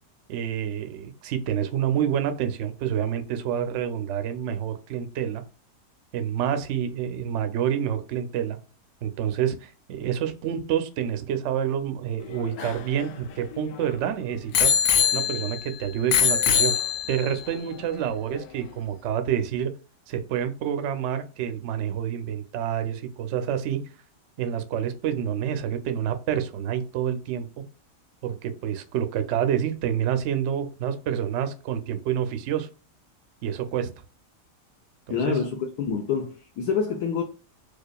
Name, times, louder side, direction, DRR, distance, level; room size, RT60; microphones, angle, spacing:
voice 1, 0.3-5.4 6.1-8.6 9.0-14.7 15.1-16.7 17.1-19.7 20.1-23.8 24.4-27.5 28.2-32.7 33.4-33.9 35.1-35.4, right 9 dB, 70° right, 0.7 m, -28 dB
Bicycle bell, 12.2-13.9 14.5-15.7 16.1-17.4 18.1-18.2, left 8 dB, 90° left, 1.2 m, -23 dB
voice 2, 35.1-37.2, left 6 dB, 70° left, 1.0 m, -27 dB
4.9 x 2.3 x 2.2 m
omnidirectional pair, 1.8 m